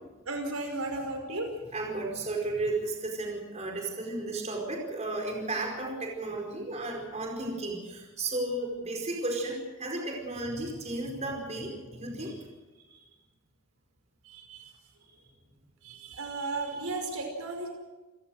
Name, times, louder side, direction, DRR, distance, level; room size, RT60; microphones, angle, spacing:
voice 1, 0.3-1.5 12.2-12.4 12.9-13.1 14.2-14.7 15.8-17.7, right 2 dB, 75° right, 4 dB, 5.4 m, -35 dB
voice 2, 1.7-12.4, right 2 dB, 30° right, 0 dB, 4.9 m, -34 dB
29.0 x 17.5 x 6.4 m, 1.2 s
head